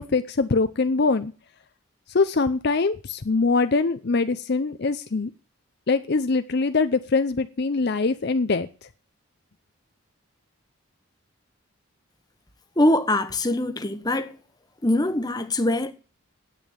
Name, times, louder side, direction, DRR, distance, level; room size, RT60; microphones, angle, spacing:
voice 1, 0.0-1.3 2.1-5.3 5.9-8.7, left 3 dB, 50° left, 0.6 m, -23 dB
voice 2, 12.8-14.4 14.8-15.9, left 1 dB, 20° left, 1.1 m, -23 dB
10.5 x 8.5 x 7.2 m
head